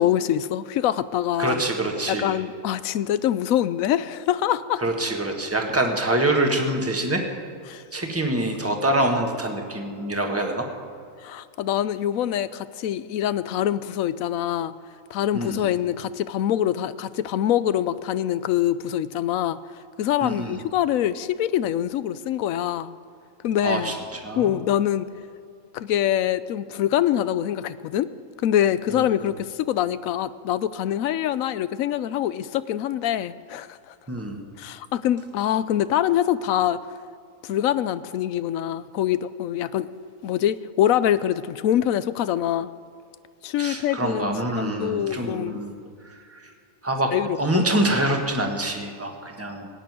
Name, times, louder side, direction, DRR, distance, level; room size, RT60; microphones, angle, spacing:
voice 1, 0.0-1.6 2.1-4.8 7.7-7.8 11.2-14.7 15.1-19.6 20.0-22.9 23.4-23.9 24.4-25.1 25.7-28.1 28.4-33.9 34.6-36.8 37.4-39.9 40.2-42.7 43.4-45.6 47.1-47.6, left 11 dB, 80° left, 15 dB, 1.0 m, -24 dB
voice 2, 1.4-2.4 4.8-7.2 7.9-10.7 15.3-15.6 20.2-20.6 23.6-24.5 28.9-29.0 34.1-34.4 43.6-45.7 46.1-46.5 46.8-47.1 47.4-49.7, right 1 dB, 10° right, 3 dB, 1.4 m, -25 dB
17.5 x 6.8 x 9.4 m, 2.4 s
omnidirectional pair, 1.4 m